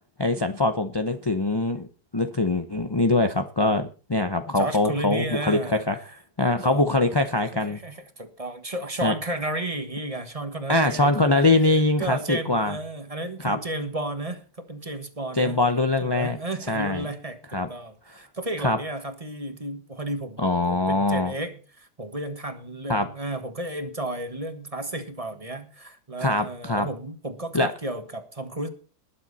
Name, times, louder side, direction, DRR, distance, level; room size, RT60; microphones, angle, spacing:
voice 1, 0.2-1.9 2.1-6.0 6.4-7.8 9.0-9.1 10.7-12.7 13.4-13.6 15.4-16.4 16.7-17.1 17.5-17.7 18.6-18.8 20.4-21.3 22.9-23.1 26.2-26.9 27.5-27.7, left 2 dB, 35° left, 7 dB, 0.4 m, -23 dB
voice 2, 4.5-6.1 6.6-6.8 7.7-11.5 12.0-15.6 16.0-28.7, right 1 dB, 20° right, 8 dB, 1.5 m, -33 dB
20.5 x 7.5 x 4.1 m, 0.36 s
omnidirectional pair, 1.8 m